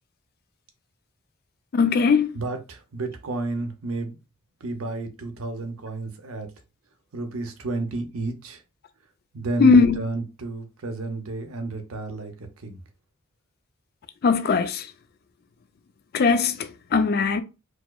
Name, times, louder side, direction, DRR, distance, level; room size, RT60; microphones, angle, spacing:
voice 1, 1.7-2.3 9.6-10.0 14.2-14.9 16.1-17.4, left 4 dB, 45° left, 0.4 m, -19 dB
voice 2, 2.3-4.2 4.6-6.5 7.1-8.6 9.3-12.8, right 2 dB, 70° right, 0.7 m, -31 dB
4.5 x 2.0 x 2.3 m
head